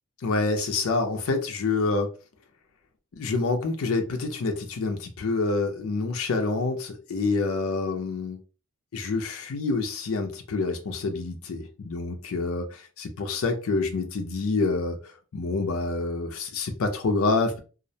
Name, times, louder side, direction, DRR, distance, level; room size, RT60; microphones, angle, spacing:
voice 1, 0.2-2.1 3.1-8.4 8.9-15.0 15.3-17.6, left 3 dB, 70° left, 4 dB, 0.4 m, -27 dB
2.4 x 2.0 x 2.6 m, 0.35 s
head